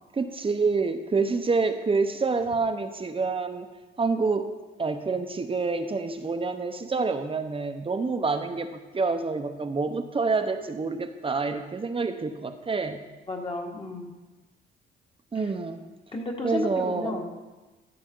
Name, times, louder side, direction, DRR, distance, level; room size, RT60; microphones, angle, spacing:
voice 1, 0.2-3.7 4.0-4.5 4.8-13.0 15.3-15.8 16.4-17.2, right 4 dB, 25° right, 7 dB, 0.9 m, -27 dB
voice 2, 13.3-14.1 15.3-15.5 16.1-17.3, left 2 dB, 25° left, 1 dB, 1.8 m, -32 dB
14.5 x 6.8 x 3.9 m, 1.2 s
cardioid pair, 90°, 20 cm